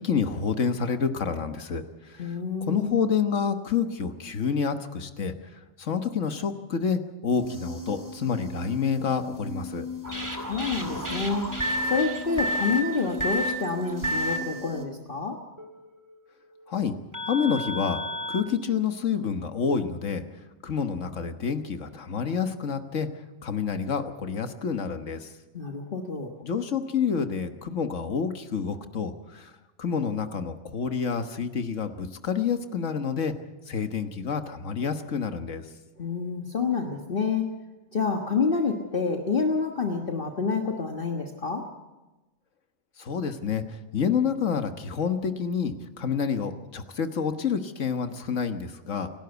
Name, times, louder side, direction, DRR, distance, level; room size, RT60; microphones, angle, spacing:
voice 1, 0.0-1.8 2.1-2.3 2.7-5.3 5.8-9.9 16.7-16.9 17.3-18.0 18.3-20.2 20.6-23.1 23.4-25.3 26.4-29.5 29.8-33.3 33.7-35.6 43.0-49.1, left 6 dB, 70° left, 8 dB, 1.7 m, -28 dB
voice 2, 2.2-3.0 10.4-11.5 11.9-15.4 25.5-26.3 36.0-37.4 37.9-41.6, left 4 dB, 45° left, 3 dB, 1.6 m, -28 dB
sound 1, 7.4-14.9, left 3 dB, 15° left, 2.1 m, -39 dB
sound 2, 10.0-14.4 15.6-15.7 17.1-18.4, equal, 15° right, 2.3 m, -30 dB
27.5 x 12.0 x 8.1 m, 1.1 s
omnidirectional pair, 1.3 m